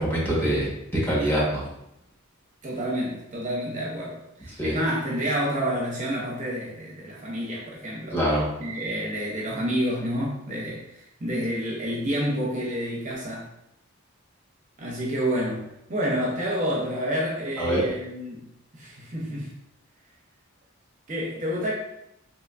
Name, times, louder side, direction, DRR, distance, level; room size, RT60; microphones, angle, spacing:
voice 1, 0.0-1.6 4.6-4.7 8.1-8.5 17.6-17.8, equal, 10° left, -7 dB, 1.0 m, -24 dB
voice 2, 2.6-8.2 8.6-13.5 14.8-18.4 18.7-19.5 21.1-21.7, equal, 35° right, -3 dB, 0.6 m, -29 dB
3.5 x 2.9 x 2.4 m, 0.82 s
head